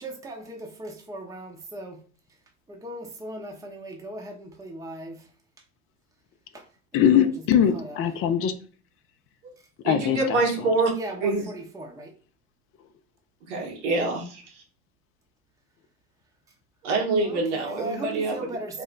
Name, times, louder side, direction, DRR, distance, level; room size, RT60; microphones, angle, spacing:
voice 1, 0.0-2.0 2.7-5.3 6.5-6.6 6.9-7.3 7.7-8.0 10.9-12.1 14.0-14.1 17.2-18.8, right 1 dB, 10° right, 0.7 m, -38 dB
voice 2, 6.9-8.5 9.8-10.4, left 9 dB, 40° left, 0.5 m, -21 dB
voice 3, 9.8-10.9 11.2-11.4 13.5-14.2 16.8-18.6, right 3 dB, 75° right, 1.3 m, -25 dB
3.3 x 2.0 x 3.8 m
hypercardioid pair, 80°, 34 cm